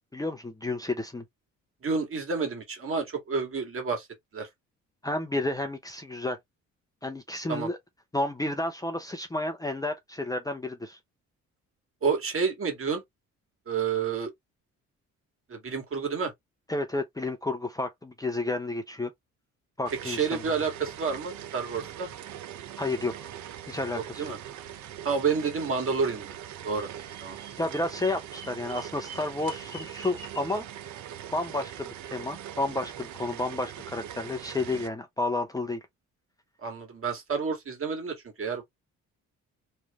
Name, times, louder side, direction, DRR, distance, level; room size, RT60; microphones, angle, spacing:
voice 1, 0.1-1.2 5.0-6.4 7.0-7.8 8.1-11.0 16.7-19.1 19.8-20.4 22.8-23.3 23.7-24.3 27.6-30.6 31.3-35.8, left 2 dB, 10° left, 0.7 m, -31 dB
voice 2, 1.8-4.1 4.3-4.5 7.5-7.7 12.0-13.0 13.7-14.3 15.5-16.3 20.0-22.1 23.9-24.4 25.0-26.4 26.6-26.9 27.2-27.4 36.6-38.6, right 5 dB, 45° right, 1.9 m, -29 dB
sound 1, 19.9-34.9, right 10 dB, 70° right, 0.8 m, -42 dB
Bird vocalization bird call bird song, 26.9-30.6, right 1 dB, 15° right, 1.6 m, -48 dB
3.3 x 2.5 x 3.5 m
cardioid pair, 90°, 30 cm